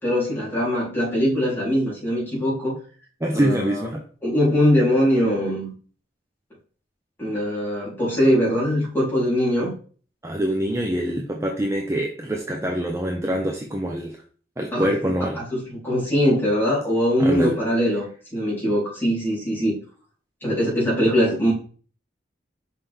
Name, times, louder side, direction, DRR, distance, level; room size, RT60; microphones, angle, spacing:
voice 1, 0.0-2.7 3.3-3.9 4.2-5.7 7.2-9.7 14.7-14.9 15.3-18.1 18.3-19.8 20.4-21.5, equal, 10° left, -7 dB, 3.6 m, -21 dB
voice 2, 3.2-4.0 10.2-14.2 14.6-15.4 17.2-17.6, equal, 15° right, 1 dB, 0.6 m, -25 dB
5.9 x 5.6 x 3.4 m, 0.41 s
head